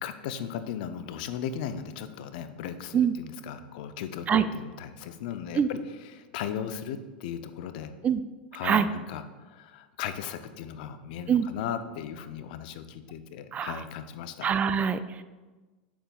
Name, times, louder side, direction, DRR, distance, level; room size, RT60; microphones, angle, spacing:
voice 1, 0.0-7.9 8.5-14.5, left 8 dB, 65° left, 10 dB, 0.5 m, -37 dB
voice 2, 14.4-15.2, right 8 dB, 30° right, 12 dB, 0.3 m, -24 dB
7.5 x 6.9 x 2.3 m, 1.3 s
hypercardioid pair, 100°, 5 cm